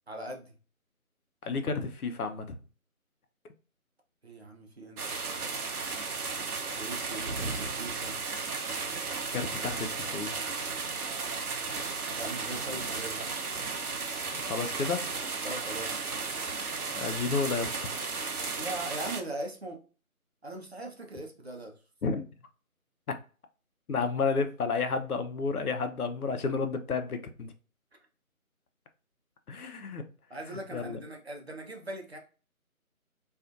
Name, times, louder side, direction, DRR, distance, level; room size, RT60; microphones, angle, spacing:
voice 1, 0.1-0.5 4.2-5.6 6.7-8.2 12.1-13.2 15.4-16.0 18.6-19.8 20.4-21.7 30.3-32.2, right 2 dB, 50° right, 0.5 m, -40 dB
voice 2, 1.4-2.6 9.3-10.3 14.3-15.1 16.9-17.9 22.0-22.3 23.1-23.2 23.9-27.5 29.5-30.0 30.5-31.0, left 4 dB, 85° left, 0.6 m, -31 dB
sound 1, 5.0-19.2, right 4 dB, 90° right, 0.7 m, -34 dB
2.5 x 2.4 x 2.5 m
figure-of-eight pair, 165°, 43 cm